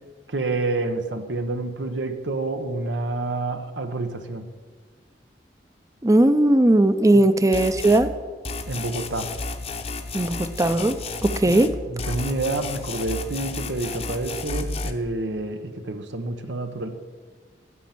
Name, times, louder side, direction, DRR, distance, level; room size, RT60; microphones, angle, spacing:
voice 1, 0.3-4.4 7.1-7.3 8.7-9.3 11.5-11.6 11.9-16.9, right 2 dB, 85° right, 7 dB, 1.1 m, -28 dB
voice 2, 6.0-8.1 10.1-10.9 11.2-11.8, right 1 dB, 20° right, 11 dB, 0.6 m, -18 dB
sound 1, 7.5-8.0 8.4-11.7 12.0-14.9, left 3 dB, 35° left, 0.9 m, -32 dB
12.5 x 7.3 x 7.7 m, 1.5 s
head